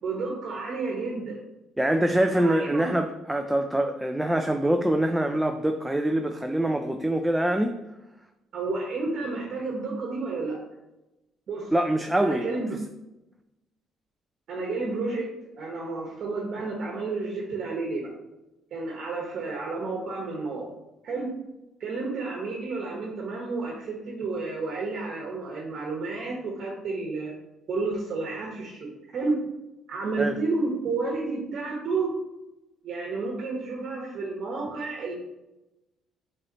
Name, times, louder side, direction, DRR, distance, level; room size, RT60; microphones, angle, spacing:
voice 1, 0.0-1.4 2.3-2.9 8.5-10.6 11.5-11.7 12.2-12.8 14.5-15.3 15.6-18.1 18.7-20.7 21.0-21.3 21.8-27.3 27.7-29.3 29.9-32.1 32.8-35.1, right 3 dB, 50° right, -2 dB, 1.2 m, -31 dB
voice 2, 1.8-7.8 11.7-12.5 30.2-30.4, right 1 dB, 5° right, 5 dB, 0.3 m, -24 dB
7.8 x 4.2 x 3.0 m, 0.96 s
cardioid pair, 160°, 0 cm